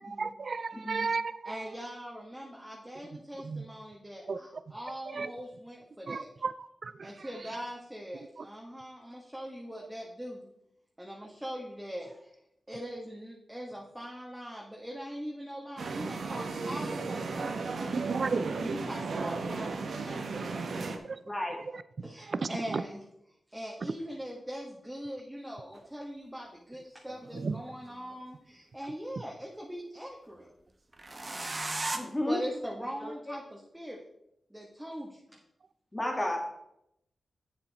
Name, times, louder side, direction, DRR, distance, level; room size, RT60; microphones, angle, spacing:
voice 1, 0.0-1.5 3.4-3.6 4.3-4.4 5.1-5.3 6.1-7.1 17.9-18.5 20.5-20.6 21.1-21.2 22.3-22.8 27.3-27.6, right 4 dB, 60° right, 14 dB, 0.5 m, -33 dB
voice 2, 0.7-1.1 21.3-21.6 31.9-32.4 33.0-33.4 35.9-36.5, left 1 dB, 20° left, 2 dB, 2.1 m, -33 dB
voice 3, 1.4-6.3 7.0-10.5 11.0-12.4 12.7-18.2 18.5-20.9 22.0-23.0 23.5-30.5 31.2-31.4 32.2-34.0 34.5-35.4, equal, 10° right, -2 dB, 1.6 m, -41 dB
sound 1, 15.8-21.0, right 4 dB, 80° right, 1.0 m, -35 dB
sound 2, 25.7-25.8 27.1-28.1 30.9-32.0, right 2 dB, 30° right, 1.1 m, -36 dB
8.2 x 7.4 x 4.2 m, 0.80 s
cardioid pair, 60°, 0 cm